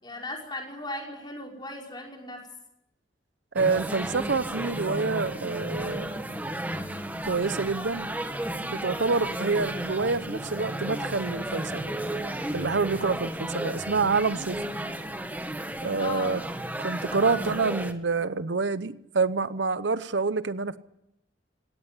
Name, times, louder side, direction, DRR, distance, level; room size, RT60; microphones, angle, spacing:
voice 1, 0.0-2.4 12.9-13.2 16.0-16.3, left 1 dB, 25° left, 0 dB, 5.5 m, -37 dB
voice 2, 3.5-6.1 7.2-8.1 8.7-11.9 12.5-14.6 15.8-16.4 16.8-20.8, right 4 dB, 75° right, 14 dB, 0.8 m, -27 dB
sound 1, 3.6-17.9, right 1 dB, 10° right, 1.5 m, -33 dB
18.0 x 17.0 x 9.9 m, 0.82 s
head